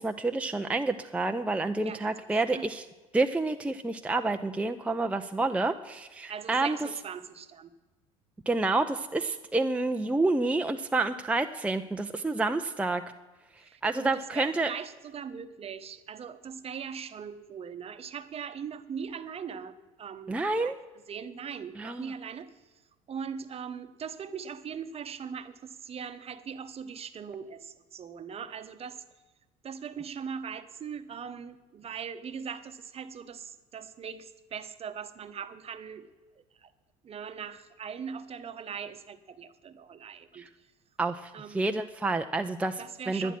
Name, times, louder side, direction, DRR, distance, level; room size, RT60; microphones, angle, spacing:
voice 1, 0.0-2.8 3.1-6.8 8.5-13.0 13.8-14.7 20.3-20.8 21.8-22.1 40.3-40.5 41.0-43.3, right 2 dB, 5° right, 6 dB, 0.5 m, -29 dB
voice 2, 1.8-2.7 6.3-7.7 13.6-20.7 21.1-22.5 23.1-29.0 29.6-36.1 36.6-36.7 37.0-40.5 41.3-41.6 42.8-43.4, right 7 dB, 35° right, 11 dB, 0.9 m, -40 dB
11.0 x 10.5 x 6.0 m, 1.2 s
hypercardioid pair, 70°, 18 cm